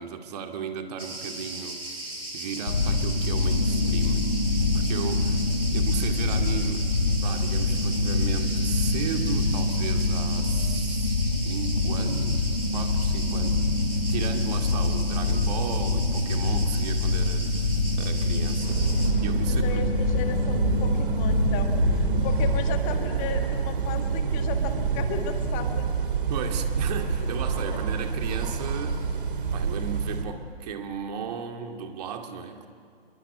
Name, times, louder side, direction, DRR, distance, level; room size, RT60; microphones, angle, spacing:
voice 1, 0.0-2.1 2.3-4.3 4.7-5.4 5.7-6.9 7.2-12.4 12.7-13.7 14.1-17.7 18.0-18.8 19.2-19.9 26.3-29.0 29.5-32.7, right 6 dB, 40° right, 4 dB, 2.3 m, -35 dB
Cricket, 1.0-19.1, right 2 dB, 80° right, 6.0 m, -37 dB
sound 1, 2.7-22.6, left 3 dB, 65° left, 4.3 m, -25 dB
sound 2, 18.6-30.2, right 6 dB, 55° right, 2.8 m, -27 dB
voice 2, 19.5-25.9, left 7 dB, 25° left, 6 dB, 1.8 m, -35 dB
29.0 x 21.5 x 8.6 m, 2.2 s
figure-of-eight pair, 120°, 31 cm